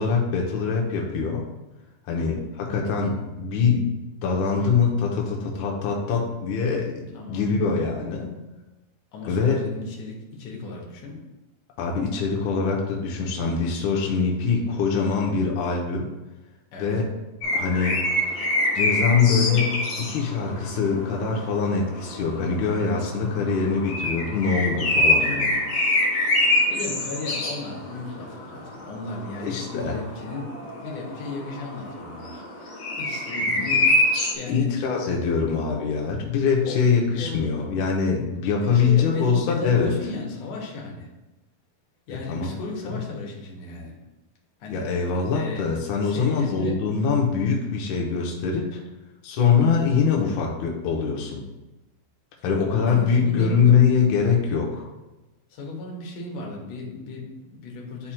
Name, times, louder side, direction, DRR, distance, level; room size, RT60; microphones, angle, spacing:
voice 1, 0.0-1.5 2.1-8.3 9.3-9.6 11.8-16.1 16.8-17.1 17.5-18.0 18.7-25.6 29.4-30.0 34.5-39.9 42.3-42.5 42.8-43.0 44.7-48.8 49.2-51.4 52.4-54.9, left 5 dB, 80° left, -1 dB, 1.7 m, -23 dB
voice 2, 7.1-7.5 9.1-11.2 16.7-16.9 23.7-23.8 26.7-33.9 34.2-34.7 36.6-36.8 37.2-37.7 38.6-41.1 42.1-43.9 44.6-44.9 45.3-45.7 46.0-46.8 52.4-52.5 52.8-53.8 55.5-58.1, left 2 dB, 65° left, -1 dB, 2.2 m, -35 dB
sound 1, 17.4-34.3, left 1 dB, 50° left, 1.5 m, -26 dB
11.0 x 4.3 x 2.2 m, 1.1 s
omnidirectional pair, 4.4 m